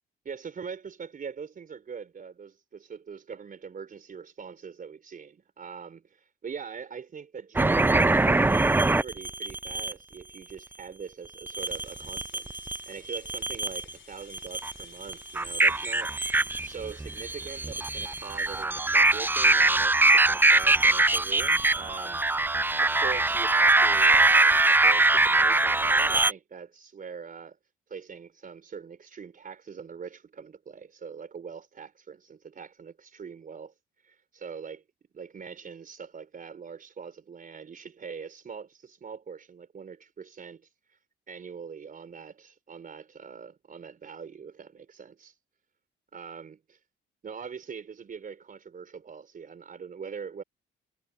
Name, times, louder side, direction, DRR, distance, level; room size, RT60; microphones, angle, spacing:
voice 1, 0.2-12.6 12.9-16.2 16.6-27.6 27.9-33.7 34.0-34.8 35.1-41.0 41.3-45.4 46.1-46.6 47.2-50.4, right 6 dB, 45° right, 4.7 m, -42 dB
sound 1, 7.6-9.9 11.5-12.8 13.1-13.9 14.3-26.3, right 2 dB, 10° right, 0.4 m, -23 dB
sound 2, 11.6-18.7, left 10 dB, 70° left, 7.9 m, -55 dB
cardioid pair, 90°, 20 cm